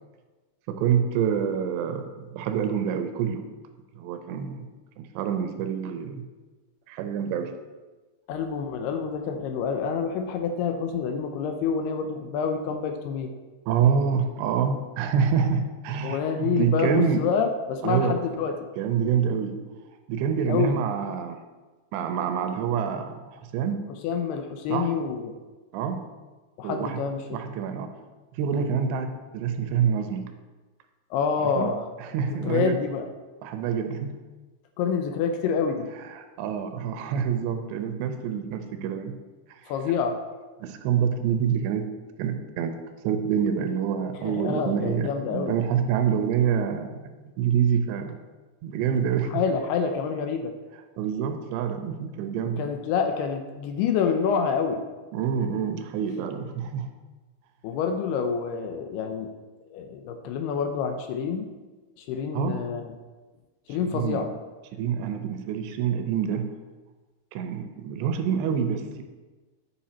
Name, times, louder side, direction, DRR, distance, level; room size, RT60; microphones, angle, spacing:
voice 1, 0.7-3.4 4.0-4.7 5.0-6.2 6.9-7.5 13.7-17.3 17.8-18.2 18.8-19.6 20.1-21.4 21.9-23.8 24.7-24.9 25.7-26.0 26.6-27.0 27.3-27.9 28.3-30.3 31.4-31.7 32.0-32.8 33.4-34.2 36.0-39.1 39.5-39.6 40.6-41.9 42.2-42.8 43.0-47.1 47.4-48.2 48.6-49.4 51.0-52.7 55.1-56.9 62.3-62.6 63.8-64.3 64.7-66.5 67.3-69.0, right 7 dB, 90° right, 7 dB, 2.9 m, -26 dB
voice 2, 8.3-13.3 16.0-18.6 20.5-20.8 24.0-25.4 26.6-27.6 28.5-28.7 31.1-31.9 32.3-33.1 34.8-35.9 39.7-40.2 44.2-45.6 49.3-50.5 52.6-54.8 57.6-59.3 59.7-61.5 62.0-62.9 63.7-64.3, left 6 dB, 80° left, 5 dB, 2.5 m, -27 dB
9.8 x 5.7 x 4.3 m, 1.3 s
omnidirectional pair, 4.9 m